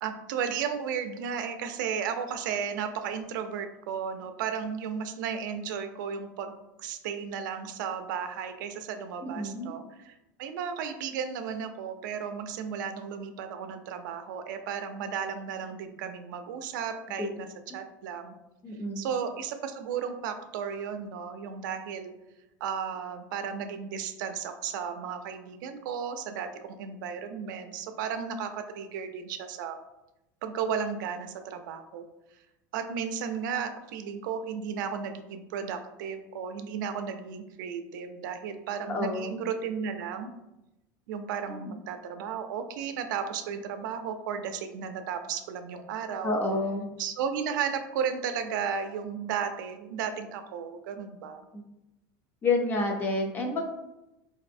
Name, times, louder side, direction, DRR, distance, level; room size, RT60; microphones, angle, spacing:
voice 1, 0.0-17.5 17.7-18.4 19.0-22.1 22.6-29.8 30.4-32.0 32.7-40.3 41.1-46.3 47.0-51.4, right 7 dB, 90° right, 7 dB, 0.4 m, -34 dB
voice 2, 9.2-9.7 17.2-17.3 18.6-19.1 38.9-39.3 41.6-41.7 46.2-46.9 51.5-51.6 52.4-53.6, left 2 dB, 20° left, 2 dB, 0.4 m, -29 dB
4.0 x 2.6 x 2.5 m, 0.94 s
supercardioid pair, 165°, 10 cm